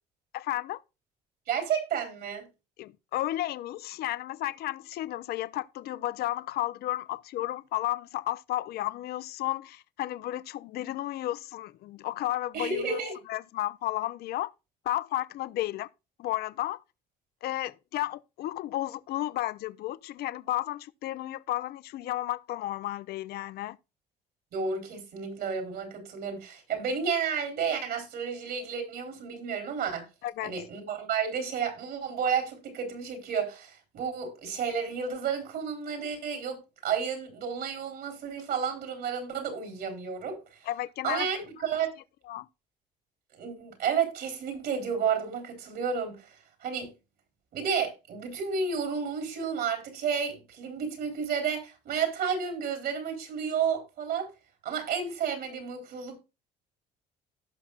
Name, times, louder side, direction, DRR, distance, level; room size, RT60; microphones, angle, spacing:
voice 1, 0.3-0.8 2.8-13.0 13.3-14.5 14.8-15.9 16.2-16.8 17.4-23.8 30.2-30.6 40.7-41.3 42.3-42.5, left 15 dB, 70° left, 0.5 m, -33 dB
voice 2, 1.5-2.5 12.5-13.1 24.5-30.1 30.4-40.7 41.0-41.9 43.3-46.9 47.5-54.3 54.6-56.2, right 6 dB, 70° right, 3.8 m, -31 dB
17.0 x 6.0 x 2.4 m
cardioid pair, 110°, 17 cm